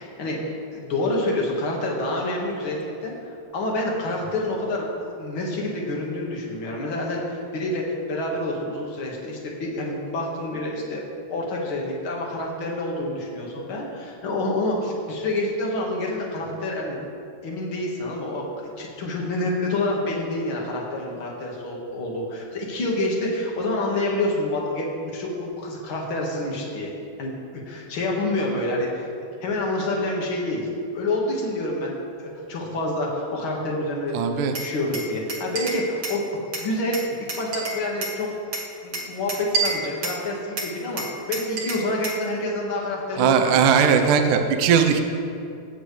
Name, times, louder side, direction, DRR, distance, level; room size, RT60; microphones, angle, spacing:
voice 1, 0.0-11.0 11.3-17.0 17.4-26.9 27.2-29.1 29.4-36.2 36.6-38.4 38.8-44.1, left 1 dB, 50° left, -2 dB, 1.6 m, -28 dB
voice 2, 34.1-34.5 43.2-45.0, right 7 dB, 80° right, 5 dB, 1.8 m, -19 dB
Glass, 34.5-36.2 36.5-38.2 38.5-40.2 40.6-42.2, right 3 dB, 55° right, 1.5 m, -29 dB
21.0 x 9.3 x 3.3 m, 2.6 s
omnidirectional pair, 4.9 m